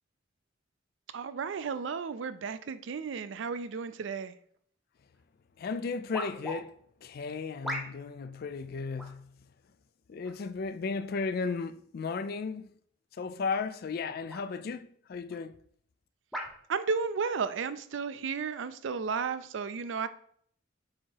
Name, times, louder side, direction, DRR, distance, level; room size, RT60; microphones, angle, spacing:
voice 1, 1.1-4.3 16.7-20.1, right 5 dB, 70° right, 0.4 m, -33 dB
sound 1, 5.1-5.2 6.1-6.6 7.6-8.2 9.0-9.2 10.2-10.6 11.4-11.6 13.5-13.7 14.3-14.5 15.3-15.4 16.3-16.6 17.4-17.5, equal, ahead, 0.7 m, -39 dB
voice 2, 5.6-6.7 7.0-9.3 10.1-12.7 13.2-15.5, left 4 dB, 50° left, 0.4 m, -35 dB
7.3 x 2.9 x 4.5 m
head